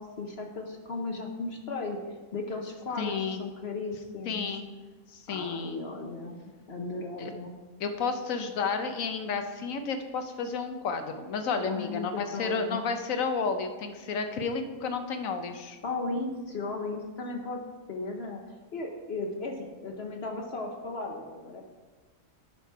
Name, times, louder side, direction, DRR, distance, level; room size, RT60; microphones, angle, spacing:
voice 1, 0.0-2.0 2.3-4.5 5.3-7.6 11.7-12.8 15.8-17.6 17.9-18.4 18.7-21.6, left 3 dB, 55° left, 2 dB, 1.1 m, -36 dB
voice 2, 3.0-3.4 4.3-4.7 5.1-5.8 7.2-7.3 7.8-15.8, left 5 dB, 80° left, 7 dB, 1.2 m, -31 dB
9.6 x 5.8 x 4.7 m, 1.3 s
omnidirectional pair, 1.4 m